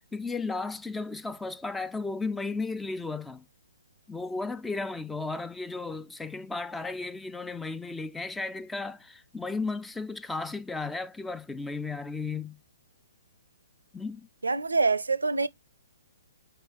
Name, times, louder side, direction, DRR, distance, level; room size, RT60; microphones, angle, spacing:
voice 1, 0.0-3.4 4.1-12.6 13.9-14.3, left 3 dB, 5° left, 0.3 m, -34 dB
voice 2, 14.4-15.5, right 4 dB, 80° right, 0.5 m, -25 dB
4.7 x 4.4 x 5.0 m
figure-of-eight pair, 125°, 0 cm